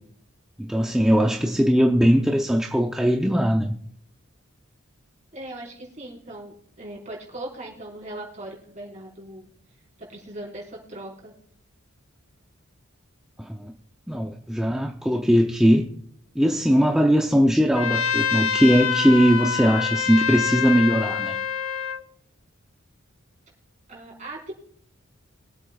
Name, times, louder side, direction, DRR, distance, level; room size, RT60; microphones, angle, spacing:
voice 1, 0.6-3.7 13.4-13.7 14.1-15.9 16.4-21.4, equal, 5° right, 0.6 m, -20 dB
voice 2, 5.3-9.5 10.0-11.3 23.9-24.5, right 1 dB, 35° right, 4.4 m, -39 dB
Trumpet, 17.7-22.0, left 7 dB, 75° left, 0.8 m, -26 dB
23.5 x 8.2 x 2.4 m
head